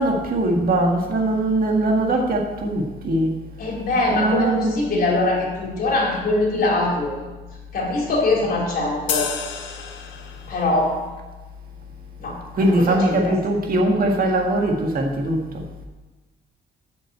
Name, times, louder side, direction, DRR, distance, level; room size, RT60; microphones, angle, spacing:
voice 1, 0.0-3.4 4.1-4.8 12.5-15.6, right 1 dB, 50° right, 1 dB, 1.8 m, -21 dB
voice 2, 3.6-7.1 7.7-9.3 10.5-11.0 12.2-13.4, left 2 dB, 55° left, -2 dB, 3.7 m, -22 dB
sound 1, 9.1-10.7, left 7 dB, 75° left, 1.5 m, -29 dB
8.9 x 6.5 x 8.1 m, 1.2 s
cardioid pair, 120°, 19 cm